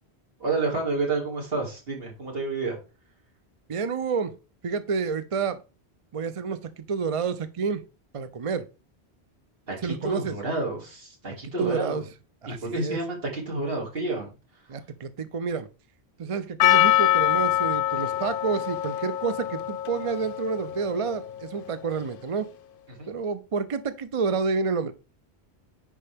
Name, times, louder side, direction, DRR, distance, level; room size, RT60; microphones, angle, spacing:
voice 1, 0.4-2.8 9.7-12.0 12.4-14.3 23.0-23.1, right 3 dB, 60° right, -2 dB, 2.7 m, -29 dB
voice 2, 3.7-4.3 4.6-5.6 6.1-7.8 8.1-8.7 9.8-10.3 11.6-12.0 12.4-13.0 14.7-15.7 16.2-22.5 23.1-24.9, right 5 dB, 40° right, 12 dB, 0.5 m, -29 dB
Percussion, 16.6-21.6, left 14 dB, 60° left, 0.7 m, -24 dB
9.9 x 4.9 x 3.4 m, 0.31 s
omnidirectional pair, 1.1 m